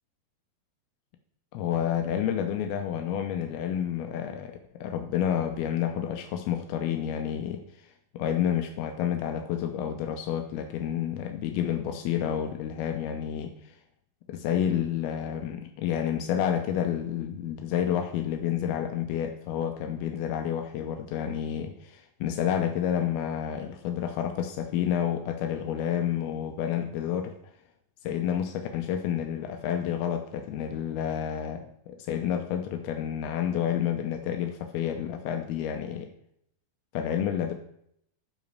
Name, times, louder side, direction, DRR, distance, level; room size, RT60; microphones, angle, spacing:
voice 1, 1.5-13.8 14.3-27.5 28.0-36.1 36.9-37.5, left 9 dB, 85° left, 5 dB, 2.6 m, -30 dB
11.0 x 5.1 x 6.7 m, 0.72 s
omnidirectional pair, 4.5 m